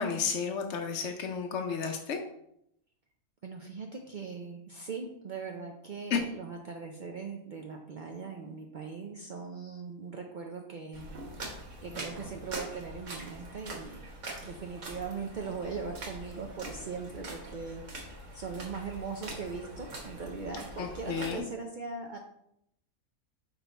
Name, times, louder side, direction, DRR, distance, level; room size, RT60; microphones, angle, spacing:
voice 1, 0.0-2.2 6.1-6.2 20.8-21.4, left 6 dB, 65° left, 3 dB, 0.9 m, -32 dB
voice 2, 3.4-11.5 11.8-14.1 14.4-22.2, right 5 dB, 75° right, 2 dB, 0.4 m, -40 dB
sound 1, 10.9-21.4, right 1 dB, 60° right, 1.5 m, -43 dB
5.3 x 4.4 x 4.0 m, 0.76 s
omnidirectional pair, 1.5 m